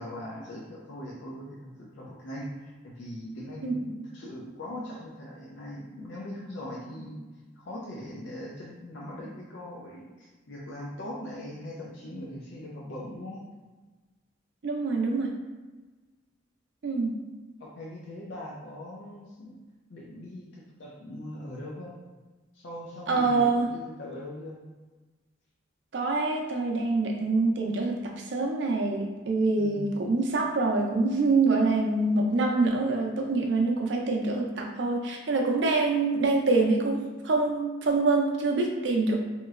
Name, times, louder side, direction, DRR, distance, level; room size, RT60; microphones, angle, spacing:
voice 1, 0.0-7.2 7.6-13.4 17.6-19.6 19.9-22.0 22.5-24.6 29.5-29.9, left 1 dB, 70° left, -4 dB, 0.5 m, -40 dB
voice 2, 14.6-15.3 16.8-17.2 23.1-23.7 25.9-39.2, right 3 dB, 65° right, 1 dB, 0.5 m, -25 dB
3.0 x 2.9 x 2.4 m, 1.3 s
head